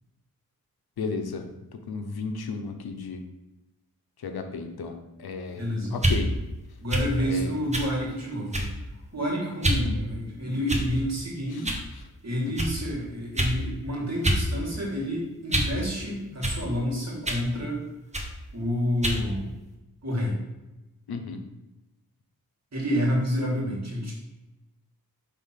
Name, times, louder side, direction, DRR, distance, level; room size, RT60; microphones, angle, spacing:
voice 1, 1.0-1.4 1.7-3.2 4.2-5.6 5.9-6.3 7.2-7.5 11.5-11.6 12.4-12.5 21.1-21.4, left 4 dB, 85° left, 6 dB, 0.8 m, -34 dB
voice 2, 5.5-6.0 6.8-8.7 9.1-11.8 12.2-17.8 18.5-19.5 20.0-20.4 22.7-24.1, equal, 45° right, -2 dB, 2.3 m, -29 dB
sound 1, 5.9-6.2 6.9-7.1 7.7-7.9 8.5-8.8 9.6-9.8 10.7-11.1 11.6-11.8 12.6-12.7 13.4-13.6 14.2-14.4 14.8-15.8 16.4-16.6 17.2-17.5 18.1-18.3 19.0-19.2, right 1 dB, 20° right, 1.1 m, -26 dB
5.6 x 3.6 x 5.8 m, 1.0 s
cardioid pair, 70°, 37 cm